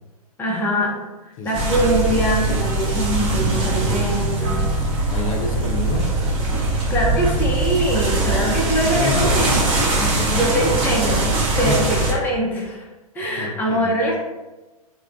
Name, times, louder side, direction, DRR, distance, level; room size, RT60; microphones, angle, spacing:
voice 1, 0.4-1.0 1.3-4.7 5.5-5.6 6.9-9.7 10.3-11.2 11.6-12.9 13.1-14.2, equal, 10° left, -3 dB, 0.6 m, -23 dB
voice 2, 1.4-2.0 4.9-6.2 8.4-8.7 8.9-10.9 11.6-11.8 13.4-13.9, left 3 dB, 60° left, 1 dB, 0.6 m, -28 dB
sound 1, 1.5-12.1, right 2 dB, 25° right, 0.8 m, -21 dB
2.3 x 2.2 x 3.4 m, 1.1 s
hypercardioid pair, 105°, 20 cm